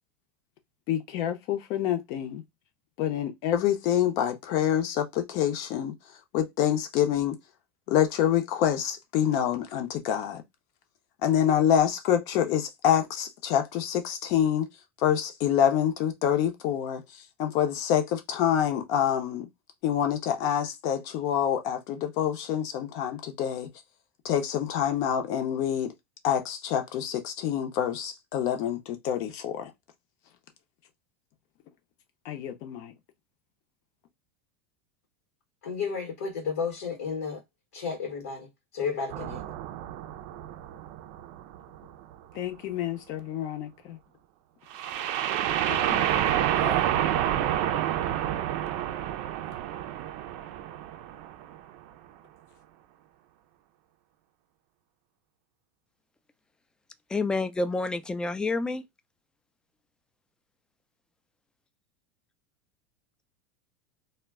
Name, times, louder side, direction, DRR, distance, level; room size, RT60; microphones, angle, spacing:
voice 1, 0.9-2.4 3.0-5.9 6.3-7.3 7.9-10.4 11.2-14.7 15.0-19.5 19.8-23.7 24.2-25.9 26.2-29.7 32.2-32.9 42.3-44.0 45.6-47.1, left 10 dB, 55° left, 0.7 m, -27 dB
voice 2, 35.6-37.4 37.7-38.5 38.7-39.4, left 5 dB, 80° left, 1.0 m, -32 dB
sound 1, 39.1-41.9 44.7-51.6, right 11 dB, 60° right, 0.4 m, -29 dB
voice 3, 57.1-58.8, left 3 dB, 10° left, 0.4 m, -28 dB
2.2 x 2.1 x 3.4 m
hypercardioid pair, 105°, 7 cm